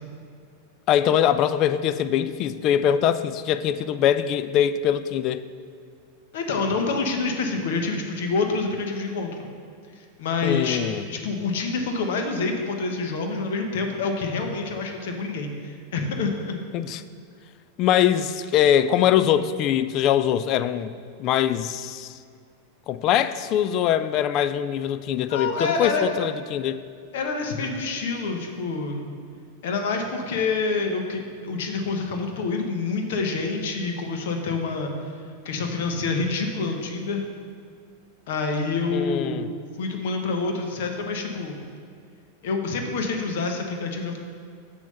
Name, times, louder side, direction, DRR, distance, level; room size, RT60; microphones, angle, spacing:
voice 1, 0.9-5.5 10.4-11.0 16.7-17.0 17.8-20.9 21.2-22.2 22.9-26.8 38.9-39.5, left 10 dB, 40° left, 13 dB, 0.3 m, -22 dB
voice 2, 6.3-9.4 10.2-10.8 11.1-16.6 25.3-26.1 27.1-29.1 29.6-34.9 35.4-37.2 38.3-39.4 39.8-41.6 42.4-44.2, left 4 dB, 55° left, 4 dB, 1.0 m, -27 dB
7.3 x 6.1 x 5.6 m, 2.2 s
figure-of-eight pair, 90°, 0 cm